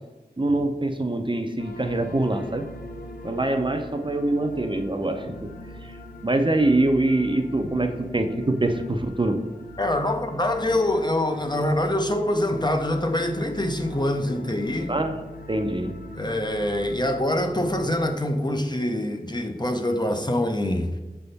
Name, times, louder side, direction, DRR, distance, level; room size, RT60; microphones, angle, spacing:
voice 1, 0.4-2.7 3.2-5.5 5.8-6.0 6.2-9.4 14.9-15.2 15.5-16.0, right 2 dB, 30° right, 0.6 m, -24 dB
sound 1, 1.6-18.1, left 2 dB, 75° left, 0.6 m, -41 dB
voice 2, 9.8-14.9 16.1-21.0, left 1 dB, 30° left, 0.6 m, -25 dB
6.6 x 3.5 x 4.0 m
wide cardioid pair, 40°, 16 cm